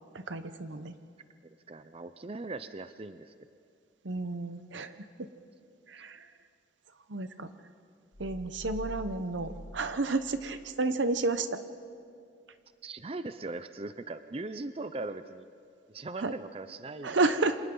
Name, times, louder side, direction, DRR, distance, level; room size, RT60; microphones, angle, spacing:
voice 1, 0.1-0.9 4.0-5.3 5.9-6.3 7.1-7.5 8.2-11.6 16.2-16.3 17.0-17.6, right 3 dB, 85° right, 10 dB, 0.9 m, -31 dB
voice 2, 1.4-3.3 12.8-15.4 15.9-17.2, right 2 dB, 30° right, 11 dB, 0.5 m, -40 dB
sound 1, 8.1-10.7 11.0-11.2, left 1 dB, 35° left, 1.1 m, -45 dB
28.5 x 26.0 x 3.9 m, 2.3 s
head